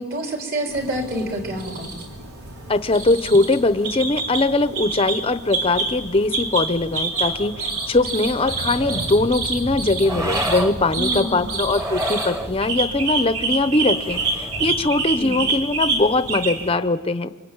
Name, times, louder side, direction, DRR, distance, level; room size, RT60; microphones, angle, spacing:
voice 1, 0.0-1.9 11.0-11.5 15.2-15.4, right 1 dB, 45° right, 2 dB, 4.4 m, -27 dB
sound 1, 0.7-16.7, right 3 dB, 80° right, 4.2 m, -28 dB
voice 2, 2.7-17.3, left 2 dB, 25° left, 12 dB, 0.8 m, -21 dB
sound 2, 8.3-9.1 10.0-10.8 11.6-12.5 13.9-14.7, right 1 dB, 15° right, 1.5 m, -29 dB
27.5 x 24.0 x 8.9 m, 1.3 s
head